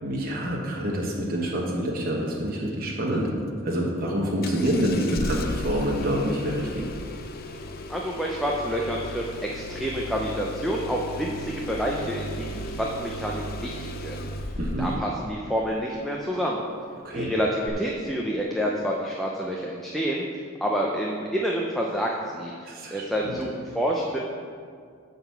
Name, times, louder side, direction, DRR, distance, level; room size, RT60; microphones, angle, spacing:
voice 1, 0.0-3.3 3.6-6.9 14.6-14.9 17.0-17.3 22.6-23.4, equal, 45° right, -3 dB, 1.1 m, -27 dB
Engine starting, 4.4-15.0 17.7-17.8, left 1 dB, 45° left, 0.5 m, -35 dB
voice 2, 7.9-16.6 17.1-24.2, equal, ahead, -2 dB, 0.6 m, -28 dB
9.7 x 4.0 x 7.0 m, 2.2 s
head